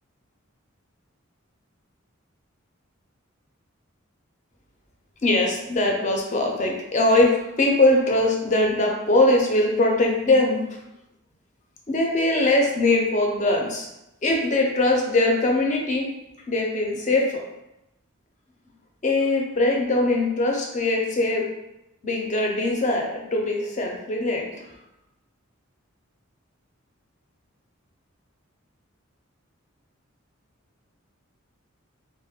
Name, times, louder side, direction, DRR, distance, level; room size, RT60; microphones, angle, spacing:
voice 1, 5.2-10.6 11.9-13.9 14.2-16.1 16.5-17.4 19.0-21.4 22.0-24.4, left 2 dB, 35° left, 1 dB, 0.5 m, -21 dB
2.3 x 2.1 x 3.4 m, 0.89 s
head